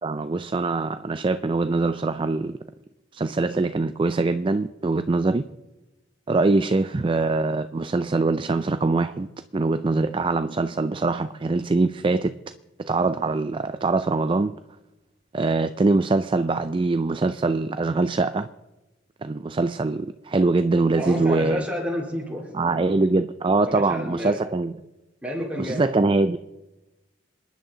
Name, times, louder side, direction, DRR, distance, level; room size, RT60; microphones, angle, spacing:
voice 1, 0.0-2.6 3.1-5.5 6.3-9.3 9.5-12.4 12.8-14.5 15.3-18.5 19.2-21.6 22.5-24.7 25.6-26.4, right 3 dB, 30° right, 0.4 m, -23 dB
voice 2, 21.0-23.1 23.6-24.4 25.2-25.9, equal, 10° right, 4.0 m, -31 dB
27.0 x 10.5 x 3.9 m
head